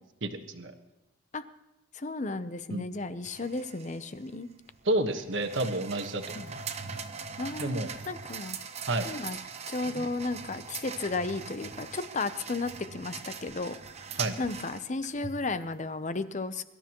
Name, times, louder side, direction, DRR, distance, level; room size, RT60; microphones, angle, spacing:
voice 1, 0.2-0.7 2.7-2.8 4.8-6.6 7.6-7.9 8.9-9.1 14.2-14.3, right 1 dB, 60° right, 7 dB, 1.3 m, -30 dB
voice 2, 1.9-4.5 6.3-6.5 7.4-7.8 8.1-8.6 9.1-9.4 9.7-13.8 14.4-16.6, left 3 dB, 35° left, 12 dB, 0.6 m, -34 dB
sound 1, 3.2-15.6, right 5 dB, 30° right, 0.9 m, -41 dB
23.5 x 12.5 x 3.0 m, 1.0 s
head